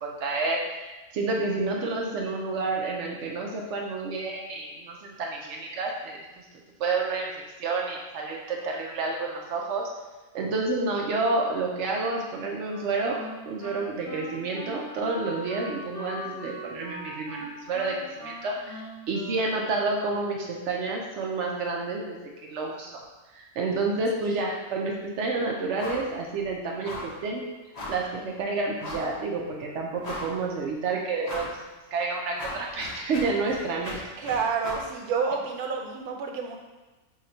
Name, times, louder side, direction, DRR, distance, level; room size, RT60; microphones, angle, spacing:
voice 1, 0.0-6.4 6.8-9.9 10.3-18.8 19.1-23.0 23.3-27.5 27.9-34.0, right 3 dB, 65° right, 0 dB, 0.7 m, -29 dB
Wind instrument woodwind instrument, 12.7-20.1, equal, 50° left, 1.0 m, -41 dB
sound 1, 25.8-26.1 26.4-26.5 26.8-27.2 27.7-28.1 28.8-29.2 29.6-29.7 30.0-30.5 31.2-31.6 32.0-34.9, left 1 dB, 65° left, 0.4 m, -38 dB
voice 2, 34.2-36.6, right 5 dB, 80° right, 2 dB, 1.1 m, -29 dB
2.8 x 2.6 x 4.3 m, 1.2 s
omnidirectional pair, 1.6 m